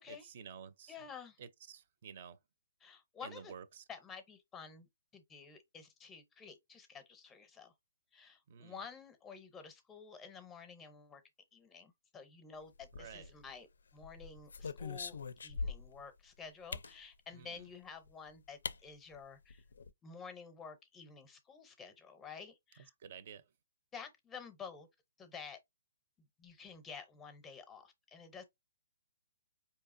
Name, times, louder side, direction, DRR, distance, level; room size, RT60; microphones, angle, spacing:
voice 1, 0.1-0.9 1.4-2.4 3.2-3.8 8.5-8.8 13.0-13.3 17.3-17.6 23.0-23.4, right 7 dB, 40° right, 0.5 m, -51 dB
voice 2, 0.9-1.4 2.8-3.5 3.9-7.7 8.1-11.2 11.5-19.6 20.0-22.9 23.9-24.9 25.2-25.6 26.4-28.4, left 6 dB, 10° left, 0.6 m, -51 dB
sound 1, 12.8-13.5 14.0-16.0 16.7-17.0 18.1-18.2 18.6-18.8 19.1-19.2 19.5-19.9, left 4 dB, 85° left, 0.4 m, -42 dB
4.6 x 2.7 x 2.5 m
hypercardioid pair, 165°, 0 cm